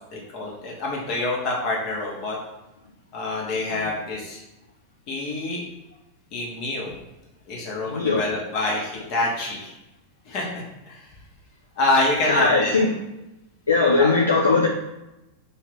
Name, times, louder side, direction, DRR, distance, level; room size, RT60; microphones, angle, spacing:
voice 1, 0.1-2.4 3.1-4.4 5.1-5.6 6.3-6.9 7.5-9.7 10.3-11.0 11.8-12.7 14.0-14.1, left 2 dB, 40° left, -3 dB, 0.9 m, -26 dB
voice 2, 7.8-8.2 12.3-12.9 13.7-14.7, left 3 dB, 70° left, 0 dB, 0.3 m, -19 dB
2.6 x 2.5 x 3.4 m, 0.95 s
figure-of-eight pair, 90°, 0 cm